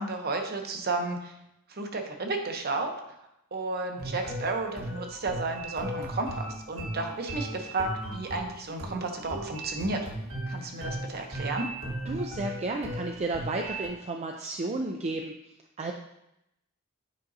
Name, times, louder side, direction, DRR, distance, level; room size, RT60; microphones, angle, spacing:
voice 1, 0.0-1.3 1.7-2.9 3.5-10.1 10.5-11.7, right 3 dB, 50° right, 4 dB, 0.8 m, -32 dB
sound 1, 4.0-13.9, right 1 dB, 80° right, 1.6 m, -36 dB
voice 2, 12.1-15.3 15.8-15.9, right 2 dB, 30° right, 2 dB, 0.4 m, -32 dB
8.3 x 5.1 x 2.7 m, 0.84 s
head